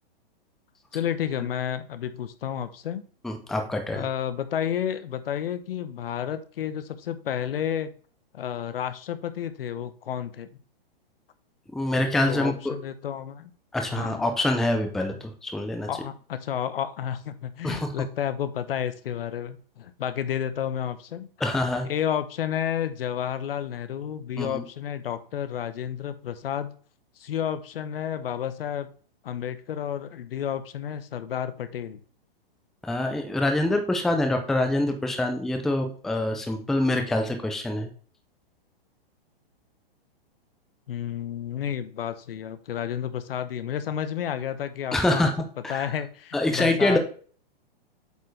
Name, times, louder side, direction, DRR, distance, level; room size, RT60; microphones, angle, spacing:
voice 1, 0.9-3.0 3.9-7.9 8.3-10.5 12.2-13.5 13.9-14.2 15.9-21.3 21.8-26.7 27.2-28.9 29.2-32.0 40.9-45.3 45.7-47.0, left 9 dB, 70° left, 12 dB, 0.8 m, -31 dB
voice 2, 3.2-4.1 11.7-12.7 13.7-15.9 17.6-17.9 21.4-21.9 24.4-24.6 32.8-37.9 44.9-45.3 45.6-45.9 46.3-47.0, left 1 dB, ahead, 5 dB, 0.5 m, -25 dB
8.2 x 4.4 x 3.2 m, 0.43 s
hypercardioid pair, 135°, 30 cm